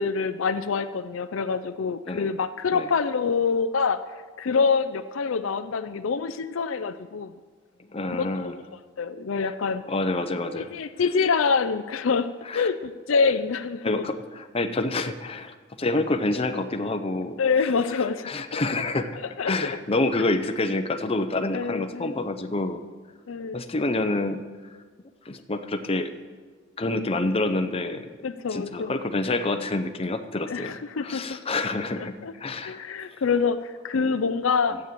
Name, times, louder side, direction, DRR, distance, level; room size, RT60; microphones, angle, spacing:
voice 1, 0.0-4.0 4.4-7.3 8.1-8.6 9.0-9.8 10.6-14.0 17.4-18.3 19.4-19.8 21.5-22.2 23.3-23.6 28.2-29.0 30.5-31.4 32.0-32.3 32.6-34.8, left 5 dB, 70° left, 11 dB, 0.5 m, -26 dB
voice 2, 7.9-8.6 9.9-10.7 12.5-12.7 13.8-17.4 18.2-19.2 19.4-22.8 23.5-24.4 25.3-26.1 26.8-28.1 28.5-32.8, left 2 dB, 30° left, 7 dB, 0.7 m, -27 dB
12.5 x 8.5 x 7.5 m, 1.5 s
head